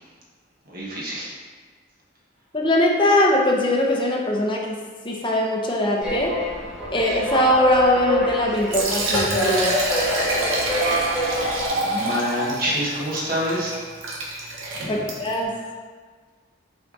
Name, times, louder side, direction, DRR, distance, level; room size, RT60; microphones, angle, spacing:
voice 1, 0.7-1.3 11.7-13.7 14.7-15.1, equal, 45° right, -5 dB, 1.6 m, -27 dB
voice 2, 2.5-4.8 5.0-6.4 6.9-9.8 14.9-15.5, left 1 dB, 25° left, 0 dB, 0.8 m, -21 dB
sound 1, 6.0-11.7, equal, 5° right, 1.9 m, -26 dB
Liquid, 8.5-15.4, right 1 dB, 85° right, 1.4 m, -26 dB
6.2 x 4.8 x 4.1 m, 1.5 s
head